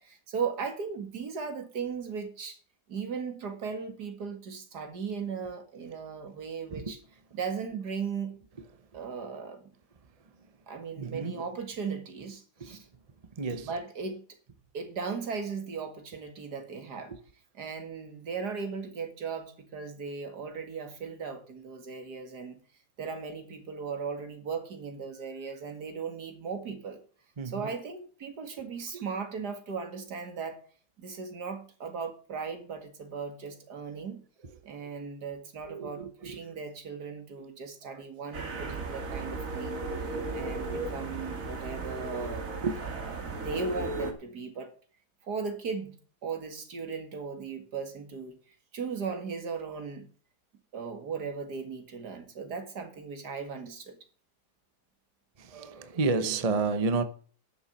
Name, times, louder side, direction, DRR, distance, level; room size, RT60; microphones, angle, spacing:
voice 1, 0.0-2.6 2.9-7.0 7.3-8.4 8.9-9.7 10.7-12.9 13.6-14.2 14.7-17.1 17.5-22.6 23.0-27.0 27.4-30.6 31.0-34.2 34.6-39.9 40.3-42.5 42.8-44.7 45.2-46.0 46.2-48.4 48.7-50.1 50.7-54.0, right 5 dB, 75° right, 2.5 m, -37 dB
voice 2, 11.0-11.4 12.6-12.8 13.4-13.7 17.1-17.2 27.4-27.7 28.9-29.1 35.6-36.6 37.9-38.0 38.3-38.8 39.9-40.8 42.6-42.8 55.4-57.0, right 4 dB, 30° right, 0.8 m, -32 dB
sound 1, 38.3-44.1, right 3 dB, 55° right, 2.2 m, -35 dB
11.0 x 7.2 x 7.2 m
omnidirectional pair, 1.8 m